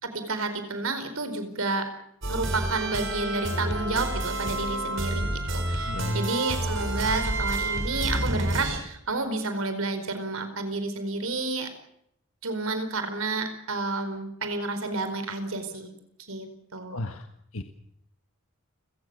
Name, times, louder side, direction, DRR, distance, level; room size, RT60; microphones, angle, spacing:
voice 1, 0.0-1.9 2.3-11.7 12.4-15.9 16.3-17.0, right 3 dB, 80° right, 9 dB, 4.6 m, -30 dB
sound 1, 2.2-8.8, right 1 dB, 60° right, 5.0 m, -29 dB
voice 2, 5.9-6.3 16.9-17.3 17.5-17.6, left 2 dB, 80° left, 7 dB, 1.6 m, -34 dB
30.0 x 17.5 x 6.9 m, 0.74 s
head